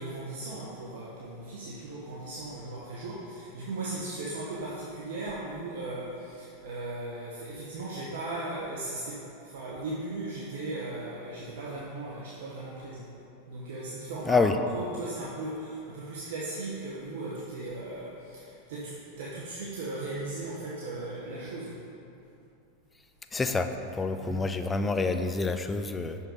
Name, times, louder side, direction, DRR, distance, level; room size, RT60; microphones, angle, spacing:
voice 1, 0.0-13.1 13.5-21.7 24.2-24.4, right 2 dB, 70° right, -5 dB, 0.9 m, -37 dB
voice 2, 23.3-26.2, left 3 dB, 15° left, 8 dB, 0.4 m, -27 dB
6.1 x 5.4 x 3.9 m, 2.7 s
hypercardioid pair, 105°, 0 cm